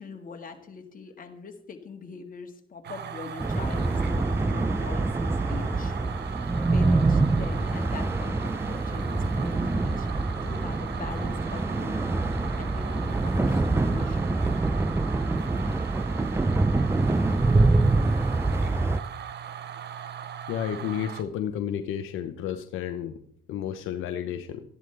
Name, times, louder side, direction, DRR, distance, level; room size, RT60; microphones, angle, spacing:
voice 1, 0.0-6.5 6.7-10.1 10.4-12.2 12.6-14.4, left 5 dB, 45° left, 4 dB, 1.9 m, -42 dB
sound 1, 2.8-21.2, right 9 dB, 60° right, 0.9 m, -39 dB
sound 2, 3.4-19.0, right 2 dB, 10° right, 0.5 m, -25 dB
voice 2, 20.5-23.2 23.5-24.6, left 9 dB, 90° left, 8 dB, 0.8 m, -31 dB
13.5 x 11.0 x 3.4 m, 0.64 s
cardioid pair, 90°, 20 cm